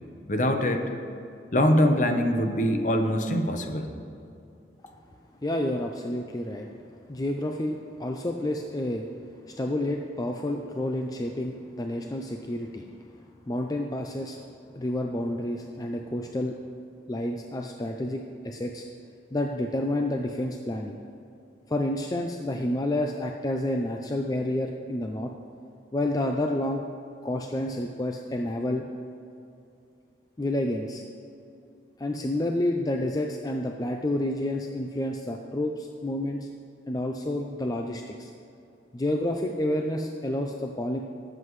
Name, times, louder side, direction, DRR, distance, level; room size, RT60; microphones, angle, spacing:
voice 1, 0.3-0.8 1.5-3.9, left 1 dB, 45° left, 5 dB, 0.9 m, -23 dB
voice 2, 5.4-6.7 7.1-9.1 9.6-12.9 13.5-14.4 14.7-16.6 17.1-18.8 19.3-21.0 21.7-25.3 25.9-26.8 27.2-28.8 30.4-31.0 32.0-36.5 36.9-38.3 38.9-41.0, left 1 dB, 20° left, 2 dB, 0.4 m, -29 dB
20.0 x 7.6 x 3.2 m, 2.6 s
head